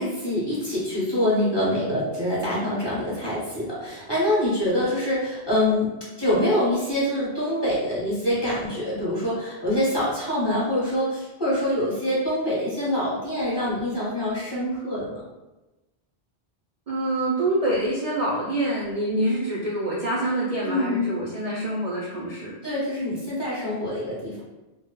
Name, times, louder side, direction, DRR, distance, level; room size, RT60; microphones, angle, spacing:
voice 1, 0.0-15.2 20.6-21.2 22.6-24.4, left 1 dB, 25° left, -9 dB, 0.7 m, -25 dB
voice 2, 16.9-22.5, right 1 dB, 50° right, -6 dB, 0.4 m, -26 dB
2.2 x 2.0 x 3.0 m, 1.0 s
omnidirectional pair, 1.1 m